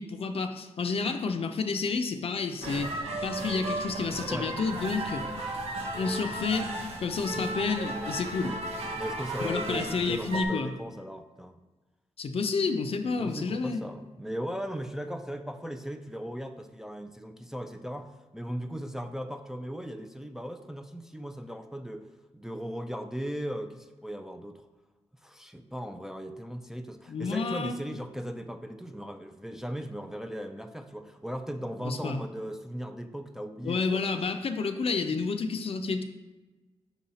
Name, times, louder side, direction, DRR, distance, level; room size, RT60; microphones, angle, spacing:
voice 1, 0.0-2.9 3.2-5.2 5.9-6.7 7.0-8.6 9.4-10.7 12.2-13.8 27.1-27.8 31.8-32.2 33.6-36.0, left 4 dB, 55° left, 7 dB, 0.5 m, -30 dB
sound 1, 2.6-10.4, right 2 dB, 65° right, 1.0 m, -35 dB
voice 2, 8.9-11.6 13.1-22.1 22.3-24.6 25.2-34.0, equal, 5° right, 7 dB, 0.4 m, -37 dB
5.9 x 4.0 x 4.1 m, 1.2 s
cardioid pair, 65°, 11 cm